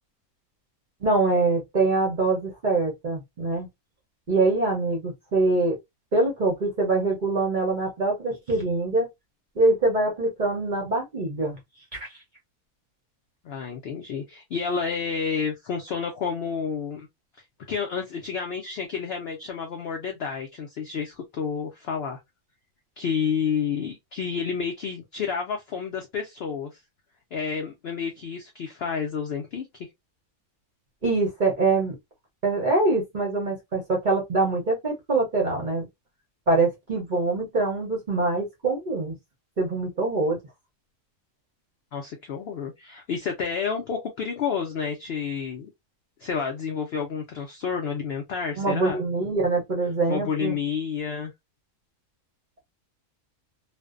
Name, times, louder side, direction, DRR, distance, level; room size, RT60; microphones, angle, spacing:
voice 1, 1.0-3.7 4.3-5.8 6.1-9.1 9.6-11.6 11.9-12.1 31.0-31.9 32.4-35.9 36.5-39.1 39.6-40.4 48.6-50.6, right 3 dB, 45° right, 0.6 m, -24 dB
voice 2, 13.4-17.1 17.7-22.2 23.0-26.7 27.3-29.7 41.9-45.7 46.2-49.0 50.1-51.3, left 6 dB, 75° left, 0.5 m, -30 dB
2.5 x 2.1 x 2.3 m
omnidirectional pair, 1.6 m